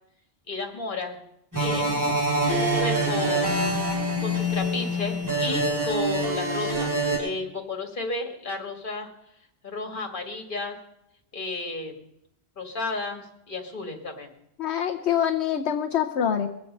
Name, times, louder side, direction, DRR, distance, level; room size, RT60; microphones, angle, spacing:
voice 1, 0.5-1.2 1.6-2.1 2.5-3.6 4.2-9.1 9.6-10.8 11.3-12.1 12.6-14.3, left 3 dB, 50° left, 3 dB, 1.9 m, -33 dB
sound 1, 1.5-7.2, right 1 dB, 15° right, 3.6 m, -25 dB
voice 2, 14.6-16.5, left 9 dB, 85° left, 4 dB, 1.1 m, -25 dB
21.0 x 7.9 x 5.3 m, 0.79 s
omnidirectional pair, 1.1 m